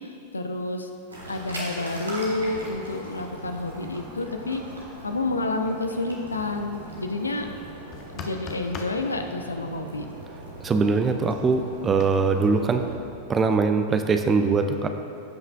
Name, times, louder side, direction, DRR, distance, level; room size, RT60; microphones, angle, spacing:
voice 1, 0.3-0.9 1.3-4.6 5.0-7.5 8.1-10.1, left 2 dB, 80° left, 5 dB, 0.5 m, -29 dB
sound 1, 1.1-13.0, right 1 dB, 75° right, 1.4 m, -40 dB
sound 2, 7.9-9.0 12.0-12.1, left 5 dB, 35° left, 0.8 m, -37 dB
voice 2, 10.6-12.9 13.3-14.9, right 4 dB, 20° right, 7 dB, 0.5 m, -22 dB
15.5 x 5.5 x 2.4 m, 2.5 s
figure-of-eight pair, 90°, 0 cm